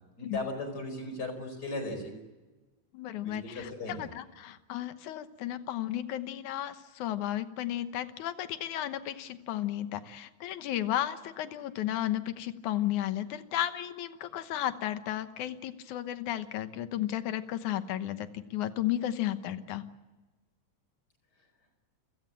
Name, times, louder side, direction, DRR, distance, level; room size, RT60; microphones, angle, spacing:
voice 1, 0.2-2.1 3.2-4.1, left 2 dB, 30° left, 7 dB, 5.3 m, -37 dB
voice 2, 2.9-19.8, left 12 dB, 85° left, 11 dB, 2.5 m, -34 dB
29.5 x 17.0 x 8.9 m, 1.2 s
omnidirectional pair, 3.4 m